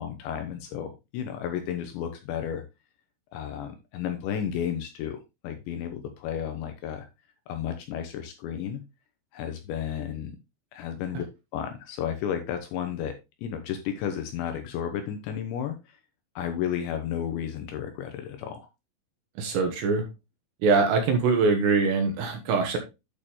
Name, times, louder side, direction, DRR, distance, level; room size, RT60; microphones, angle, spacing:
voice 1, 0.0-2.6 3.3-7.1 7.5-8.8 9.3-10.3 10.7-11.2 11.5-15.8 16.4-18.7, left 9 dB, 80° left, 7 dB, 2.8 m, -32 dB
voice 2, 19.4-20.0 20.6-22.8, right 4 dB, 70° right, 4 dB, 3.1 m, -23 dB
8.9 x 6.6 x 3.2 m, 0.24 s
omnidirectional pair, 5.9 m